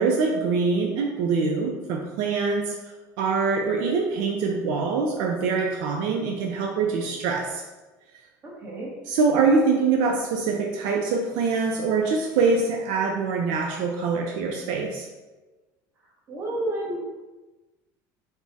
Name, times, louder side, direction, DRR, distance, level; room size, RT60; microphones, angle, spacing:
voice 1, 0.0-2.8 3.2-7.6 9.1-15.1, right 4 dB, 75° right, 1 dB, 0.4 m, -24 dB
voice 2, 8.4-9.0 16.3-17.0, right 1 dB, 30° right, -3 dB, 0.9 m, -30 dB
3.5 x 2.1 x 4.0 m, 1.2 s
cardioid pair, 150°, 8 cm